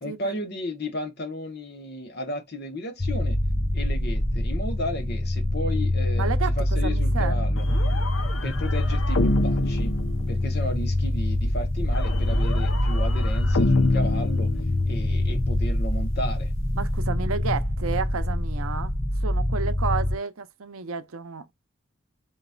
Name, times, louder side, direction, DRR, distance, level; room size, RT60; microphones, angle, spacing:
voice 1, 0.0-3.4 3.7-7.7 8.4-10.0 10.3-14.5 14.9-16.5, left 1 dB, 50° left, 1.1 m, -34 dB
sound 1, 3.0-20.2, left 1 dB, 10° left, 0.4 m, -25 dB
voice 2, 6.2-7.7 16.8-18.9 19.2-21.5, right 5 dB, 90° right, 0.6 m, -31 dB
sound 2, 7.6-10.8 11.9-15.2, left 2 dB, 75° left, 0.7 m, -28 dB
4.0 x 3.9 x 2.3 m
head